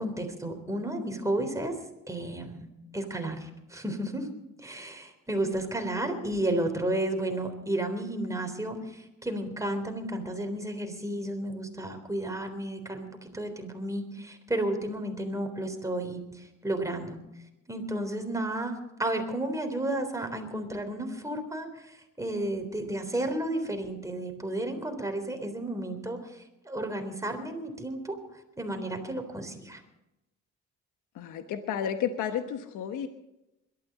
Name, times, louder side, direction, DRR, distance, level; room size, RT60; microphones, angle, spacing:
voice 1, 0.0-1.7 2.1-2.7 2.9-4.3 4.6-17.2 17.7-18.7 19.0-28.2 28.6-29.8, right 1 dB, 10° right, 4 dB, 3.6 m, -32 dB
voice 2, 31.1-33.1, left 8 dB, 85° left, 7 dB, 1.2 m, -32 dB
21.5 x 13.0 x 4.2 m, 0.92 s
cardioid pair, 90°, 30 cm